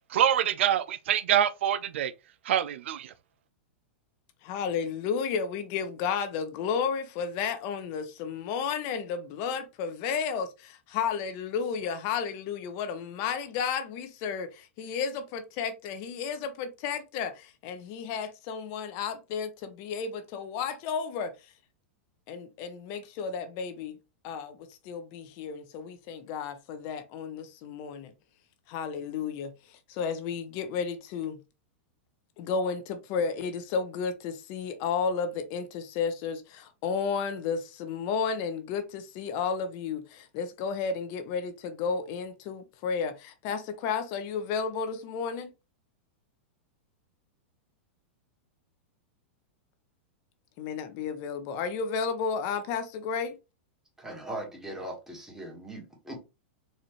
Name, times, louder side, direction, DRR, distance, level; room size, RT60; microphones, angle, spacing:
voice 1, 0.1-2.1 2.5-3.1, right 10 dB, 75° right, 0.3 m, -25 dB
voice 2, 4.4-21.3 22.3-24.0 24.2-24.6 24.8-28.1 28.7-31.4 32.4-45.5 50.6-53.4, left 6 dB, 50° left, 0.7 m, -32 dB
voice 3, 54.0-56.2, right 1 dB, 5° right, 1.4 m, -39 dB
4.2 x 2.5 x 3.0 m
hypercardioid pair, 125°, 7 cm